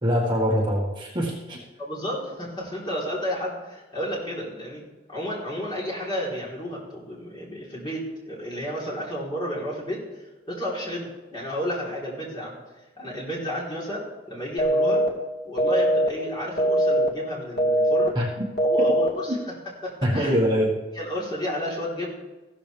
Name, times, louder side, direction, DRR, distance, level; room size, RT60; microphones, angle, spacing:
voice 1, 0.0-1.6 18.2-18.3 18.8-18.9 19.3-19.4 20.0-20.8, equal, 25° right, -3 dB, 1.7 m, -23 dB
voice 2, 1.8-4.8 5.1-12.6 13.0-15.0 15.4-18.1 18.6-19.4 19.8-20.4 20.9-22.1, equal, 25° left, -5 dB, 3.9 m, -32 dB
sound 1, 14.6-15.1 15.6-16.1 16.6-17.1 17.6-18.1 18.6-19.1, right 1 dB, 55° left, 2.1 m, -21 dB
15.0 x 13.0 x 3.5 m, 1.2 s
head